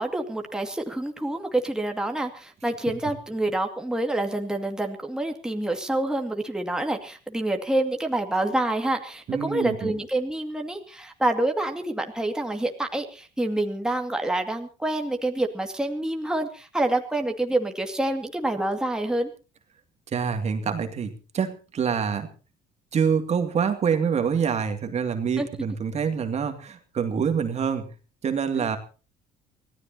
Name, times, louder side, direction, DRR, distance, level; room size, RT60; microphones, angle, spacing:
voice 1, 0.0-19.3 25.4-25.5 28.6-28.7, right 1 dB, 5° right, 3 dB, 2.2 m, -27 dB
voice 2, 9.3-9.9 20.1-22.3 22.9-27.9 28.2-28.8, right 6 dB, 45° right, 6 dB, 2.4 m, -26 dB
24.5 x 16.5 x 2.9 m, 0.34 s
cardioid pair, 95°, 16 cm